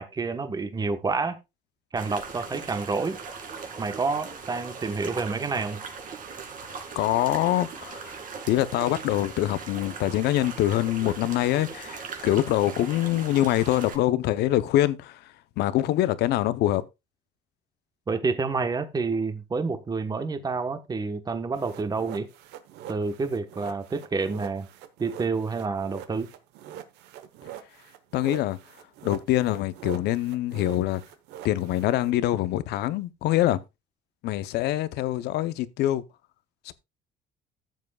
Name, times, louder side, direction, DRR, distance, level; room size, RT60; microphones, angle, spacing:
voice 1, 0.0-1.4 1.9-3.2 3.8-5.8 18.1-22.3 22.9-24.7 25.0-26.3, right 4 dB, 25° right, 1.1 m, -28 dB
sound 1, 2.0-14.0, right 5 dB, 55° right, 2.3 m, -40 dB
voice 2, 6.6-8.2 8.5-16.8 28.1-28.6 29.0-31.0 31.4-33.6 34.2-36.0 36.6-36.7, left 14 dB, 80° left, 0.7 m, -25 dB
sound 2, 21.6-32.1, right 11 dB, 85° right, 1.1 m, -44 dB
14.0 x 7.5 x 2.3 m
cardioid pair, 110°, 17 cm